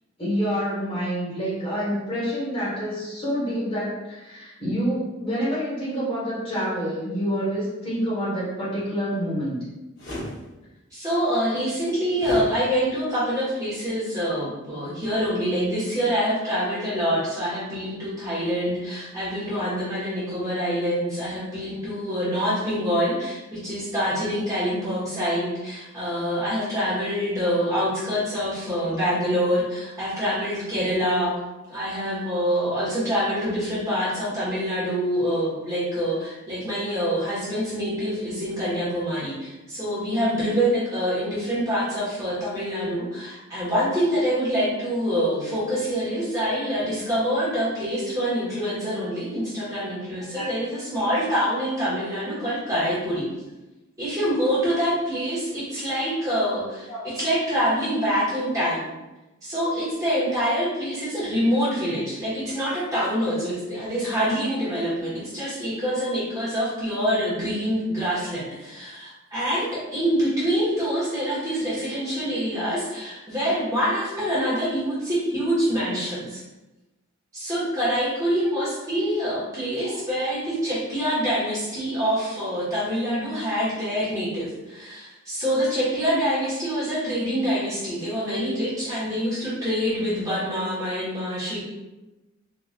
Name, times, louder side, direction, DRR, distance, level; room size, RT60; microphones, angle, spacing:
voice 1, 0.2-9.6 50.3-50.5 56.9-57.0 79.8-79.9, equal, 25° left, -9 dB, 1.4 m, -27 dB
sound 1, 10.0-10.3 12.2-12.5, equal, 65° left, 1.5 m, -33 dB
voice 2, 10.9-31.3 31.7-53.3 54.0-58.9 59.4-76.4 77.3-91.6, equal, 15° right, -10 dB, 1.5 m, -25 dB
3.9 x 3.0 x 2.5 m, 1.0 s
head